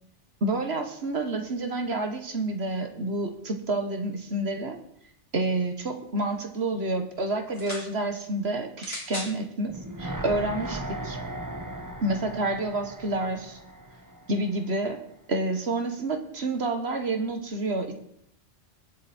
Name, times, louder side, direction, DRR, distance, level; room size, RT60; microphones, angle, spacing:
voice 1, 0.4-4.8 5.3-11.2 12.0-13.6 14.3-15.0 15.3-17.9, right 2 dB, 60° right, 5 dB, 1.9 m, -29 dB
sound 1, 7.5-7.9 8.8-9.4 10.3-10.4, left 1 dB, 35° left, 2.8 m, -37 dB
sound 2, 9.7-14.8 15.1-15.2, right 1 dB, 15° right, 1.1 m, -37 dB
21.0 x 8.1 x 4.5 m, 0.70 s
omnidirectional pair, 1.2 m